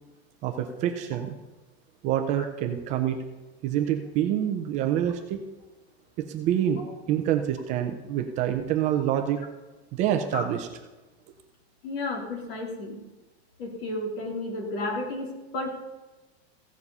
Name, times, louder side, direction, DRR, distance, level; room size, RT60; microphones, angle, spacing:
voice 1, 0.4-1.3 2.0-3.2 3.6-5.4 6.3-6.8 7.1-9.4 9.9-10.7, right 10 dB, 20° right, 5 dB, 0.5 m, -26 dB
voice 2, 11.8-13.0 13.6-15.8, left 2 dB, 60° left, 1 dB, 3.3 m, -32 dB
15.5 x 7.3 x 5.4 m, 1.1 s
supercardioid pair, 170°, 33 cm